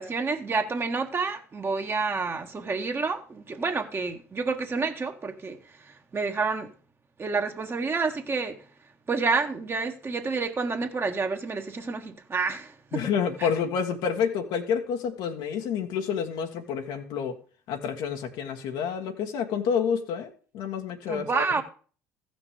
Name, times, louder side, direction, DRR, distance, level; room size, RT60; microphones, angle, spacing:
voice 1, 0.0-6.7 7.2-8.6 9.1-13.1 13.4-13.5 21.1-21.6, right 4 dB, 30° right, 1.6 m, -29 dB
voice 2, 12.9-17.3 17.7-21.6, left 7 dB, 65° left, 1.5 m, -29 dB
15.0 x 6.1 x 5.1 m
hypercardioid pair, 65°, 8 cm